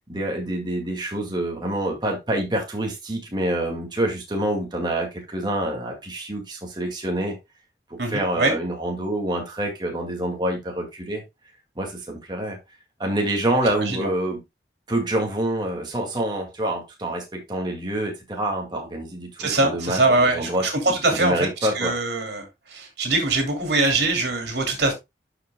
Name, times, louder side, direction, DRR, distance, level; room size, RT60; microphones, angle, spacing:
voice 1, 0.1-7.4 8.1-11.2 11.8-12.6 13.0-14.4 14.9-22.0, right 1 dB, 25° right, 2.0 m, -27 dB
voice 2, 8.0-8.5 13.8-14.1 19.4-21.5 21.7-22.4 22.7-24.9, right 2 dB, 75° right, 2.7 m, -22 dB
11.5 x 5.1 x 2.2 m
head